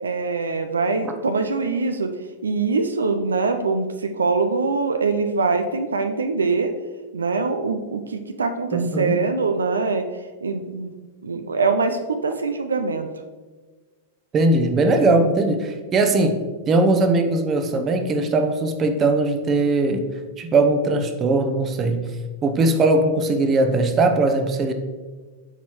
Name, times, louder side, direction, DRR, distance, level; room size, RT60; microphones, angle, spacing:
voice 1, 0.0-2.1 2.4-6.7 7.1-10.0 10.4-10.9 11.2-13.1, right 4 dB, 85° right, 7 dB, 0.4 m, -23 dB
voice 2, 8.7-9.2 14.3-16.4 16.7-20.1 20.4-22.1 22.4-24.7, right 2 dB, 30° right, 6 dB, 0.8 m, -20 dB
7.8 x 4.3 x 3.1 m, 1.3 s
hypercardioid pair, 100°, 0 cm